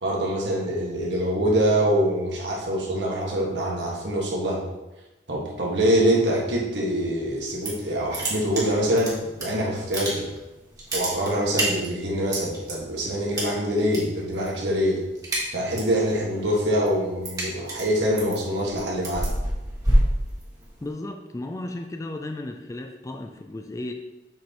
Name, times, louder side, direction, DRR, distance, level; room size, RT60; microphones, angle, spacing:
voice 1, 0.0-4.6 5.3-10.2 10.9-15.0 15.5-19.3, equal, 85° right, -2 dB, 1.6 m, -24 dB
sound 1, 7.4-7.9 8.1-9.4 9.8-10.4 10.7-12.7 13.3-14.0 14.3-14.6 14.9-16.0 16.4-20.9, right 1 dB, 20° right, 1.9 m, -26 dB
voice 2, 20.8-23.9, left 1 dB, 20° left, 4 dB, 0.4 m, -34 dB
7.3 x 5.4 x 3.0 m, 1.0 s
head